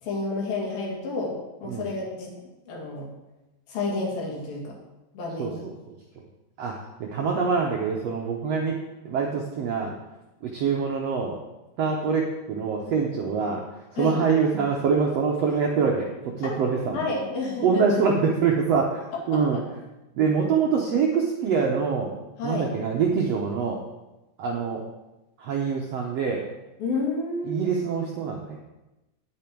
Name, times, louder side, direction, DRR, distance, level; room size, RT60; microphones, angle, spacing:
voice 1, 0.0-3.1 3.7-4.7 5.1-5.6 14.0-14.2 16.4-17.8 19.3-19.6 22.4-22.7 26.8-27.6, left 3 dB, 80° left, -2 dB, 3.9 m, -30 dB
voice 2, 5.4-5.7 6.6-8.7 9.0-9.9 10.4-11.4 11.8-13.6 13.9-17.1 17.6-19.0 19.3-19.6 20.1-22.1 22.4-23.8 24.4-24.8 25.4-26.4 27.4-28.6, right 5 dB, 75° right, 0 dB, 1.5 m, -25 dB
9.8 x 8.8 x 4.6 m, 1.0 s
omnidirectional pair, 4.1 m